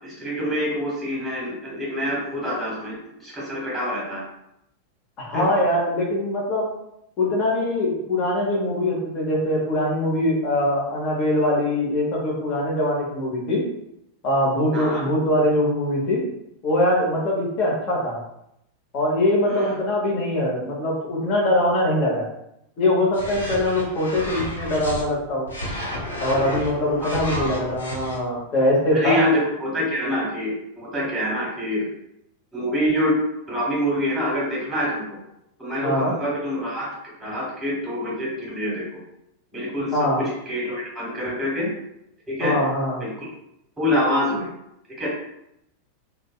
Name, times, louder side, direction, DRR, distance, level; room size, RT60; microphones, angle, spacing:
voice 1, 0.0-4.2 5.3-5.5 14.7-15.0 19.4-19.8 27.0-27.5 28.9-31.8 32.5-33.2 33.5-35.2 35.6-36.9 37.2-38.8 39.5-41.7 42.3-42.6 43.0-43.3 43.8-44.5 45.0-45.1, left 1 dB, 10° right, -6 dB, 1.2 m, -26 dB
voice 2, 5.2-6.7 7.2-13.6 14.2-16.2 16.6-18.2 18.9-22.3 22.8-25.5 26.2-29.2 35.8-36.1 39.9-40.2 42.4-43.0, left 1 dB, 35° left, -3 dB, 0.8 m, -22 dB
sound 1, 23.1-25.0 25.5-28.2, equal, 75° left, 0.6 m, -31 dB
2.6 x 2.1 x 2.3 m, 0.81 s
figure-of-eight pair, 90°, 0 cm